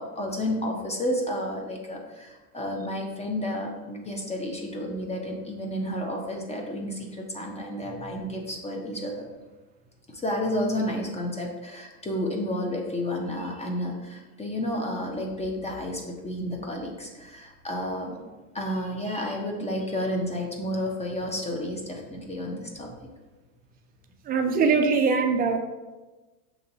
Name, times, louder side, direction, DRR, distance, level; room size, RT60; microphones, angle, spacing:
voice 1, 0.0-9.3 10.1-18.1 18.5-22.9, left 1 dB, 15° left, 0 dB, 0.7 m, -31 dB
voice 2, 24.3-25.6, right 4 dB, 20° right, 5 dB, 0.3 m, -22 dB
6.3 x 3.0 x 2.7 m, 1.2 s
hypercardioid pair, 90°, 45 cm